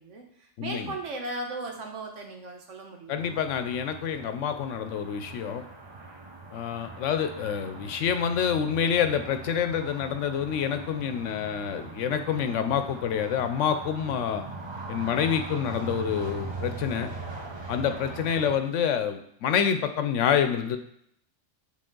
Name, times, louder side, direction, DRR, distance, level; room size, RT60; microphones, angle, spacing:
voice 1, 0.0-3.3 18.4-18.8, right 2 dB, 80° right, 2 dB, 1.3 m, -37 dB
voice 2, 0.6-0.9 3.1-5.6 6.5-14.4 14.9-17.1 17.7-20.8, left 8 dB, 90° left, 9 dB, 1.0 m, -27 dB
sound 1, 3.2-18.6, right 3 dB, 25° right, 0.8 m, -40 dB
7.6 x 3.6 x 3.8 m, 0.69 s
omnidirectional pair, 1.2 m